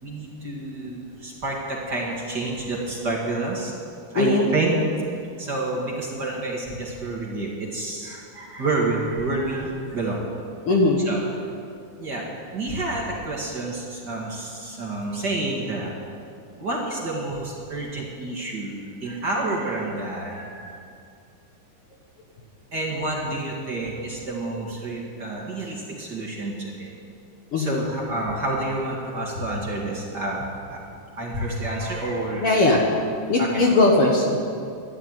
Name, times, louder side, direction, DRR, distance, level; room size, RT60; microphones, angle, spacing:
voice 1, 0.0-3.7 4.1-4.7 5.4-10.2 11.1-11.2 12.0-15.9 16.6-20.8 22.7-26.9 27.6-30.4 30.7-30.8 31.2-32.7 33.4-33.6, right 2 dB, 35° right, -3 dB, 2.2 m, -29 dB
voice 2, 4.2-4.5 10.7-11.0 27.5-27.9 32.4-32.8 33.3-34.4, left 2 dB, 55° left, 0 dB, 1.9 m, -19 dB
12.5 x 11.5 x 9.3 m, 2.4 s
omnidirectional pair, 3.6 m